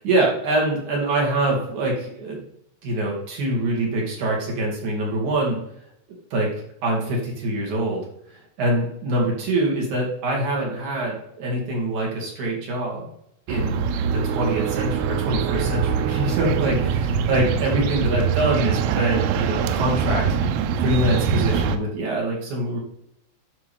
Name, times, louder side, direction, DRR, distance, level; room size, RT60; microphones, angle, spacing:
voice 1, 0.0-2.4 2.8-5.6 6.3-8.0 8.6-13.1 13.5-13.8 14.1-16.8 17.3-20.4 20.8-22.8, right 1 dB, 45° right, -3 dB, 3.3 m, -24 dB
sound 1, 13.5-21.8, right 7 dB, 85° right, 3.4 m, -23 dB
12.0 x 5.6 x 3.6 m, 0.75 s
omnidirectional pair, 5.9 m